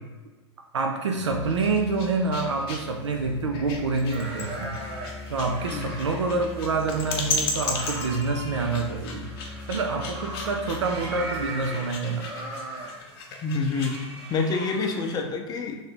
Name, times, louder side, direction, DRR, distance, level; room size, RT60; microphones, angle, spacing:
voice 1, 0.7-4.8 5.0-9.3 9.7-12.3, right 3 dB, 80° right, 2 dB, 0.4 m, -27 dB
Musical instrument, 1.2-11.5, left 3 dB, 5° right, 1.0 m, -42 dB
sound 1, 1.4-14.1, left 3 dB, 55° left, 0.8 m, -35 dB
sound 2, 4.1-15.2, right 2 dB, 40° right, 0.9 m, -39 dB
voice 2, 13.4-14.0 14.3-15.8, left 4 dB, 25° left, 3 dB, 0.6 m, -27 dB
3.2 x 2.8 x 4.3 m, 1.2 s
figure-of-eight pair, 90°, 15 cm